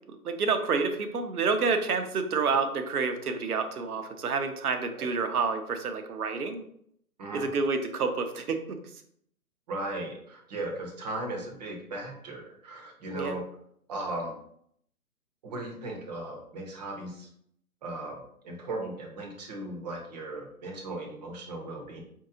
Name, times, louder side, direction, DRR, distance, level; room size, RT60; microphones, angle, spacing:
voice 1, 0.2-6.6 7.3-8.8 13.1-13.4, right 4 dB, 75° right, 7 dB, 0.8 m, -28 dB
voice 2, 9.7-13.4 13.9-14.3 15.4-17.3 17.8-18.2 18.4-22.0, right 2 dB, 30° right, 1 dB, 0.8 m, -37 dB
4.6 x 2.7 x 2.6 m, 0.69 s
figure-of-eight pair, 140°, 45 cm